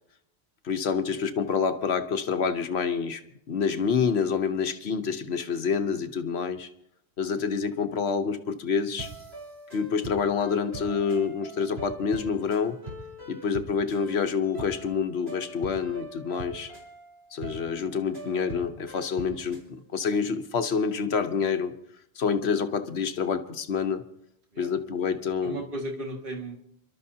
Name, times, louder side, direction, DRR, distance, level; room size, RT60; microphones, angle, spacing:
voice 1, 0.6-3.2 3.5-6.7 7.2-9.1 9.7-12.8 13.3-16.7 17.3-21.7 22.2-24.0 24.6-25.6, left 6 dB, 75° left, 9 dB, 1.2 m, -27 dB
sound 1, 9.0-19.7, right 1 dB, 75° right, 4.0 m, -43 dB
voice 2, 25.4-26.6, right 1 dB, 55° right, 0 dB, 2.3 m, -35 dB
28.0 x 12.5 x 2.8 m, 0.75 s
omnidirectional pair, 1.1 m